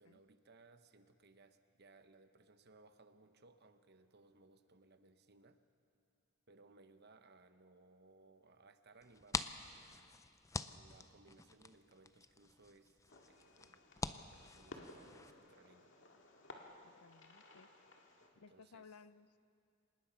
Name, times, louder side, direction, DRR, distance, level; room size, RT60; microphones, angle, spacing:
voice 1, 0.0-5.6 6.5-10.2 10.6-13.0 13.2-13.8 14.1-15.9 18.5-19.0, right 3 dB, 50° right, 9 dB, 1.0 m, -65 dB
sound 1, 9.0-15.3, left 4 dB, 15° left, 0.4 m, -46 dB
Fireworks, 13.1-18.3, left 2 dB, 60° left, 2.0 m, -58 dB
voice 2, 16.8-17.9 18.4-19.4, left 5 dB, 90° left, 15 dB, 0.6 m, -60 dB
26.0 x 19.5 x 5.8 m, 2.4 s
head